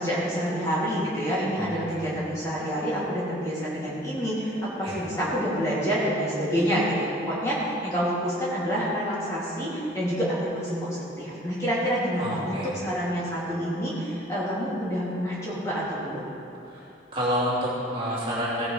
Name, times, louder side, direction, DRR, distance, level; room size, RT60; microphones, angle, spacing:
voice 1, 0.0-16.3, equal, 15° left, -9 dB, 2.6 m, -28 dB
voice 2, 1.6-2.1 4.8-5.0 12.2-12.7 16.6-18.7, equal, 30° right, -8 dB, 2.7 m, -29 dB
17.0 x 9.6 x 3.3 m, 2.7 s
head